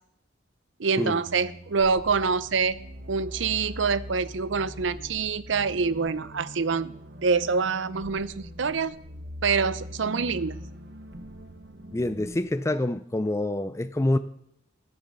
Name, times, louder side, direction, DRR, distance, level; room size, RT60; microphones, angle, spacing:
voice 1, 0.8-2.8 3.1-9.0 9.4-10.6, right 5 dB, 80° right, 0.6 m, -26 dB
sound 1, 1.3-12.4, equal, 60° right, 1.0 m, -42 dB
voice 2, 11.9-14.2, left 1 dB, 15° left, 0.4 m, -26 dB
19.0 x 6.8 x 5.5 m
head